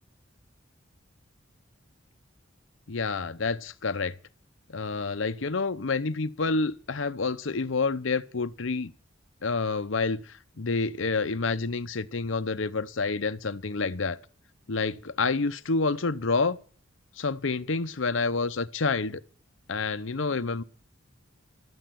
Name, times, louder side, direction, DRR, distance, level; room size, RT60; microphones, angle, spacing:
voice 1, 2.9-4.1 4.7-8.9 9.4-14.2 14.7-16.6 17.2-19.2 19.7-20.6, left 4 dB, 70° left, 0.8 m, -28 dB
13.0 x 9.1 x 7.6 m
head